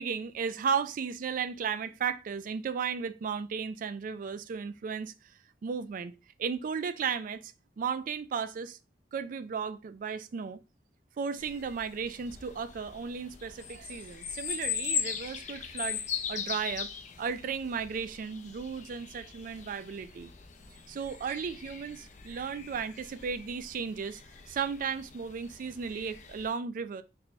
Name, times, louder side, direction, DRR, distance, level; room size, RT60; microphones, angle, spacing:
voice 1, 0.0-5.3 5.6-6.1 6.4-8.8 9.1-10.6 11.2-16.0 16.3-16.9 17.2-20.3 20.9-24.2 24.5-27.0, right 6 dB, 50° right, 0.3 m, -35 dB
sound 1, 11.4-26.5, left 7 dB, 45° left, 0.5 m, -40 dB
3.4 x 2.1 x 4.0 m
head